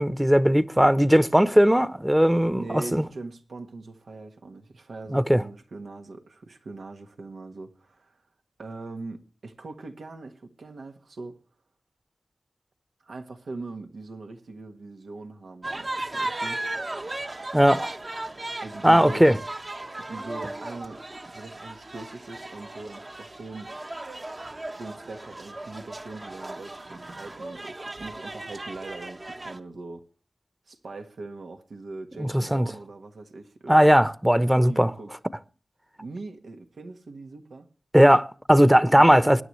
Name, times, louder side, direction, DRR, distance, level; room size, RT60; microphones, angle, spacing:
voice 1, 0.0-3.0 5.1-5.4 17.5-17.9 18.8-19.4 32.2-32.7 33.7-34.9 37.9-39.4, equal, 10° right, 0.9 m, -18 dB
voice 2, 2.6-8.2 8.6-11.4 13.0-16.6 18.6-19.3 20.1-21.0 21.3-23.7 24.8-30.1 30.7-33.9 34.6-35.1 36.0-37.7 38.9-39.4, right 3 dB, 90° right, 1.5 m, -41 dB
sound 1, 15.6-29.6, right 2 dB, 45° right, 1.3 m, -36 dB
21.5 x 10.0 x 3.2 m
cardioid pair, 40°, 0 cm